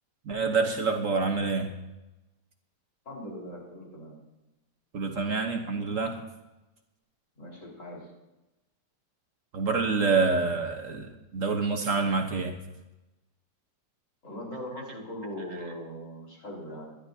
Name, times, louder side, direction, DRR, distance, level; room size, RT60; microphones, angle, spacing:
voice 1, 0.2-1.7 4.9-6.2 9.5-12.6, right 4 dB, 55° right, 4 dB, 1.4 m, -27 dB
voice 2, 3.0-4.2 7.3-8.1 14.2-17.0, equal, 50° left, -3 dB, 4.9 m, -40 dB
22.5 x 11.5 x 2.8 m, 1.0 s
omnidirectional pair, 1.8 m